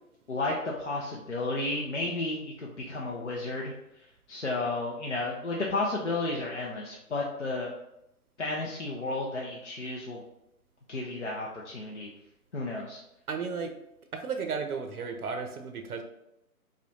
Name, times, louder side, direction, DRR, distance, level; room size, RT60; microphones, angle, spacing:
voice 1, 0.3-3.7 4.3-7.7 8.4-10.2 10.9-12.1 12.5-13.0, left 2 dB, 50° left, -3 dB, 0.6 m, -32 dB
voice 2, 13.3-13.7 14.1-16.0, right 5 dB, 75° right, 5 dB, 0.6 m, -34 dB
4.9 x 2.2 x 2.7 m, 0.84 s
hypercardioid pair, 175°, 45 cm